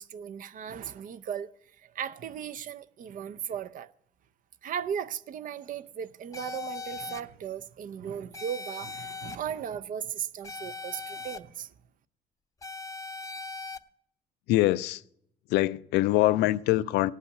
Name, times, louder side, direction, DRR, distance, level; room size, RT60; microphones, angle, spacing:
voice 1, 0.0-3.9 4.6-11.7, right 8 dB, 55° right, 0.6 m, -37 dB
sound 1, 6.3-7.2 8.3-9.4 10.4-11.4 12.6-13.8, left 4 dB, 20° left, 0.6 m, -39 dB
voice 2, 14.5-15.0 15.5-17.1, left 16 dB, 85° left, 0.5 m, -24 dB
16.5 x 5.6 x 9.4 m
cardioid pair, 110°, 17 cm